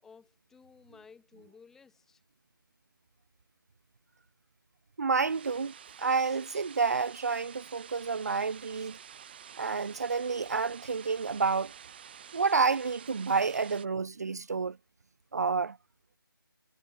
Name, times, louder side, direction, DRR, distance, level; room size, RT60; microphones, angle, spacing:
voice 1, 0.0-2.2, left 5 dB, 5° left, 4.8 m, -56 dB
voice 2, 5.0-9.0 9.6-11.7 12.3-14.8 15.3-15.8, right 5 dB, 45° right, 0.8 m, -29 dB
sound 1, 5.2-13.9, right 8 dB, 25° right, 5.8 m, -50 dB
figure-of-eight pair, 170°, 12 cm